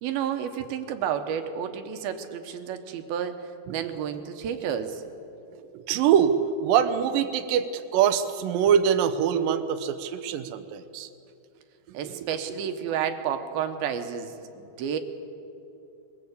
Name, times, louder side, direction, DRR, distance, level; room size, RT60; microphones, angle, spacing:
voice 1, 0.0-5.0 11.9-15.0, right 8 dB, 70° right, 7 dB, 2.7 m, -31 dB
voice 2, 5.7-11.1 11.9-12.2, right 8 dB, 85° right, 8 dB, 1.9 m, -24 dB
21.5 x 21.0 x 8.4 m, 2.7 s
omnidirectional pair, 5.2 m